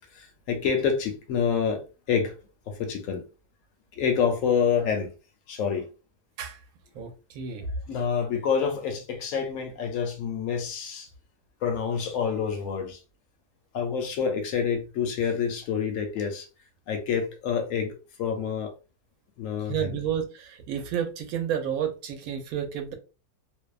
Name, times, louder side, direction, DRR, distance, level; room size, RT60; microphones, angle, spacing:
voice 1, 0.2-1.8 2.1-2.3 2.7-3.2 4.0-5.1 5.5-5.9 7.9-11.1 11.6-13.0 13.7-16.5 16.9-18.7 19.4-20.0, left 6 dB, 65° left, 0.8 m, -27 dB
voice 2, 6.9-7.7 19.7-22.9, right 8 dB, 70° right, 1.0 m, -31 dB
2.6 x 2.1 x 2.3 m
omnidirectional pair, 1.7 m